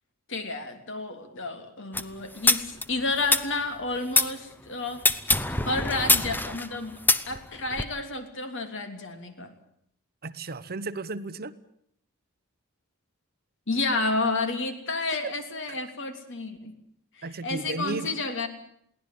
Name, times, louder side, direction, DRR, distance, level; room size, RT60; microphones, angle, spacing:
voice 1, 0.3-5.0 5.6-6.9 7.3-9.5 13.7-16.7 17.4-18.5, left 3 dB, 60° left, 7 dB, 3.2 m, -30 dB
sound 1, 1.9-4.3 5.0-7.8, left 2 dB, 10° left, 0.9 m, -24 dB
voice 2, 10.2-11.5 15.2-15.3 15.7-15.8 17.2-18.1, right 3 dB, 45° right, 13 dB, 1.0 m, -34 dB
22.5 x 17.5 x 9.3 m, 0.70 s
head